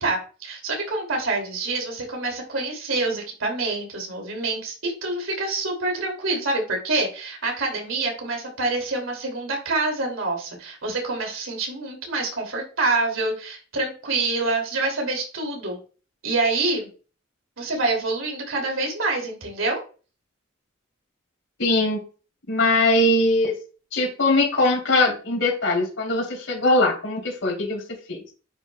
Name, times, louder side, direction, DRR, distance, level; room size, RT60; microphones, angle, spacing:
voice 1, 0.0-15.8 16.2-16.9 17.6-19.8, right 3 dB, 85° right, 1 dB, 2.7 m, -26 dB
voice 2, 21.6-22.0 22.5-23.5 23.9-27.8 28.1-28.2, left 2 dB, 70° left, -1 dB, 3.2 m, -21 dB
9.5 x 6.0 x 2.3 m, 0.36 s
head